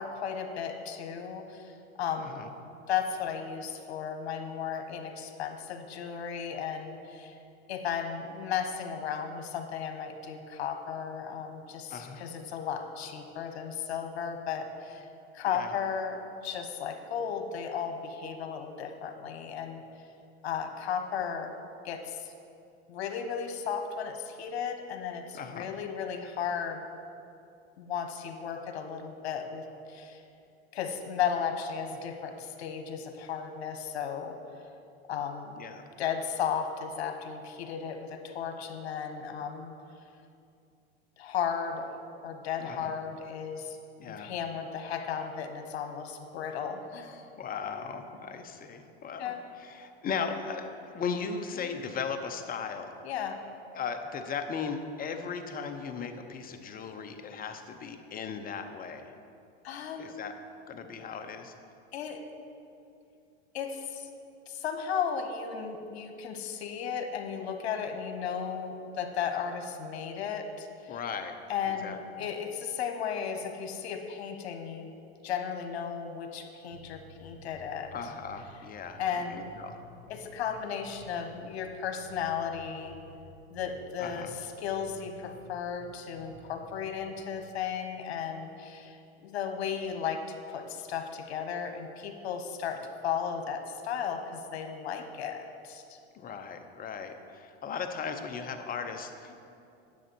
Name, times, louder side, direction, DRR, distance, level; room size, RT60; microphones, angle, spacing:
voice 1, 0.0-2.4 2.9-7.4 7.7-15.1 15.3-19.8 20.4-21.5 21.8-22.3 22.9-26.8 27.8-30.2 30.7-34.4 35.1-35.5 36.0-39.7 41.2-41.9 42.2-43.8 44.2-47.3 49.2-49.4 51.6-51.8 53.0-53.4 59.6-60.1 61.9-62.2 63.5-64.1 64.5-71.0 71.5-74.9 75.2-77.9 79.0-79.5 80.1-83.0 83.5-84.3 84.6-90.2 90.5-96.0, left 7 dB, 75° left, 6 dB, 1.2 m, -35 dB
voice 2, 2.2-2.5 11.9-12.3 15.5-15.7 25.3-25.7 35.6-35.8 42.6-42.9 44.0-44.3 47.4-52.9 53.7-59.1 60.0-60.3 60.7-61.5 70.9-71.4 71.7-72.0 77.9-79.0 79.3-79.8 84.0-84.3 96.1-99.3, left 6 dB, 25° left, 6 dB, 0.8 m, -37 dB
sound 1, 76.7-77.9 78.2-78.4 78.9-81.7 82.0-83.2 83.5-83.7 84.2-87.1, right 1 dB, 40° right, 2.5 m, -53 dB
9.9 x 7.0 x 4.6 m, 2.5 s
hypercardioid pair, 105°, 32 cm